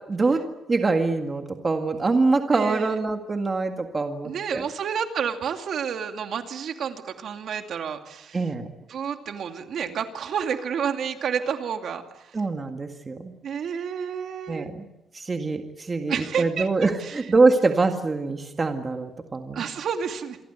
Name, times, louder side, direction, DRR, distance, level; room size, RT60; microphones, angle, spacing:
voice 1, 0.1-0.4 0.7-4.7 8.3-8.7 12.3-13.3 14.5-14.9 15.1-19.6, right 3 dB, 20° right, 5 dB, 1.9 m, -24 dB
voice 2, 2.5-2.9 4.2-8.4 8.9-12.4 13.4-14.7 16.1-16.7 17.0-17.1 19.5-20.4, right 7 dB, 55° right, 5 dB, 2.5 m, -30 dB
27.5 x 23.0 x 8.2 m, 0.94 s
cardioid pair, 165°, 0 cm